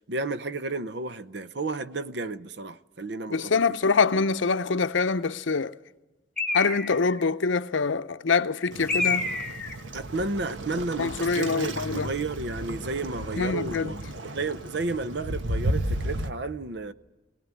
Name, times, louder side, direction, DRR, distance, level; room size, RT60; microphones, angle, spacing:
voice 1, 0.0-3.8 9.9-14.0 14.3-16.9, right 3 dB, 65° right, 0.7 m, -32 dB
voice 2, 3.3-5.8 6.5-9.3 11.0-12.1 13.4-13.9, left 4 dB, 80° left, 0.7 m, -25 dB
Bird, 6.4-7.2 8.9-9.8, left 4 dB, 5° left, 1.2 m, -28 dB
Waves surf, 8.7-16.3, right 1 dB, 80° right, 1.4 m, -33 dB
21.5 x 18.5 x 9.6 m
head